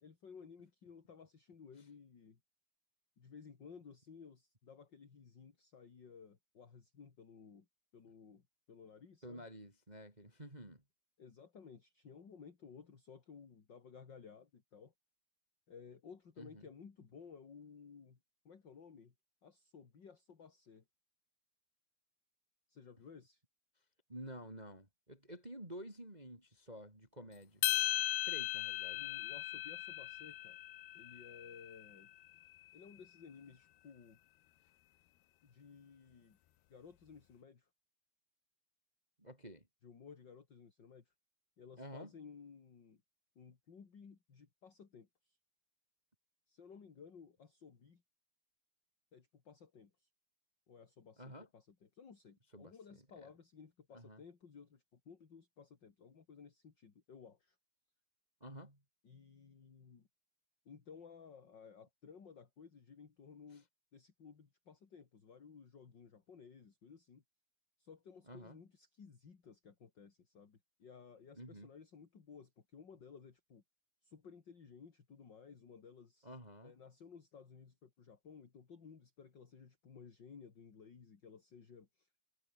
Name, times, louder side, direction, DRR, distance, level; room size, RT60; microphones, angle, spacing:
voice 1, 0.0-2.4 3.2-7.7 7.9-9.5 11.2-14.9 15.7-18.2 18.4-19.1 19.4-20.8 22.7-23.4 28.9-30.6 30.9-32.1 32.7-34.2 35.4-36.4 36.7-37.7 39.8-41.1 41.6-43.0 43.4-45.4 46.5-48.0 49.1-50.1 50.7-57.6 59.0-60.1 60.6-63.7 63.9-67.2 67.8-73.6 74.0-76.3 76.6-82.1, left 6 dB, 35° left, 2.4 m, -57 dB
voice 2, 9.2-10.8 16.4-16.7 24.1-27.6 28.3-29.0 39.2-39.6 41.8-42.1 51.2-51.5 52.5-52.7 53.2-53.3 53.9-54.2 58.4-58.8 68.3-68.6 71.4-71.7 76.2-76.7, equal, 10° right, 4.1 m, -50 dB
sound 1, 27.6-32.0, left 14 dB, 75° left, 3.0 m, -38 dB
omnidirectional pair, 4.7 m